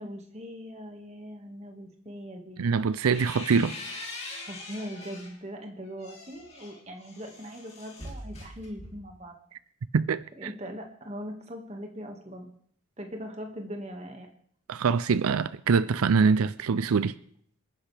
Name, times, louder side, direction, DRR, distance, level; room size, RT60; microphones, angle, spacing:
voice 1, 0.0-2.6 4.4-9.4 10.4-12.5 13.0-14.3, equal, 30° right, 1.8 m, -40 dB
voice 2, 2.6-3.7 9.9-10.2 14.7-17.1, right 5 dB, 85° right, 0.5 m, -24 dB
sound 1, 2.7-5.4 5.8-9.2, left 2 dB, 30° left, 3.0 m, -42 dB
27.5 x 10.0 x 3.4 m
head